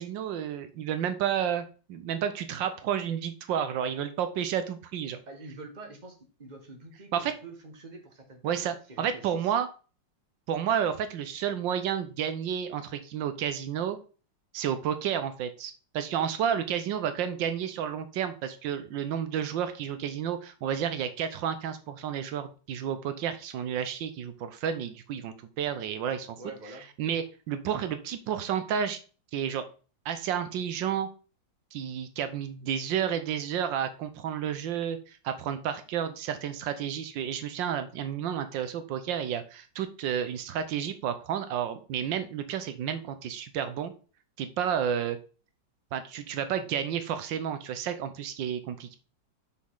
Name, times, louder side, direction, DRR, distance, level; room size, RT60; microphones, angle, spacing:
voice 1, 0.0-5.2 7.1-7.3 8.4-9.7 10.5-14.0 14.5-26.4 27.0-29.0 29.3-29.6 30.0-31.1 31.7-43.9 44.4-45.2 45.9-49.0, right 8 dB, 85° right, 10 dB, 1.5 m, -31 dB
voice 2, 5.3-9.5 26.4-27.2, right 2 dB, 25° right, 3 dB, 1.6 m, -46 dB
6.2 x 6.0 x 3.8 m, 0.36 s
omnidirectional pair, 2.0 m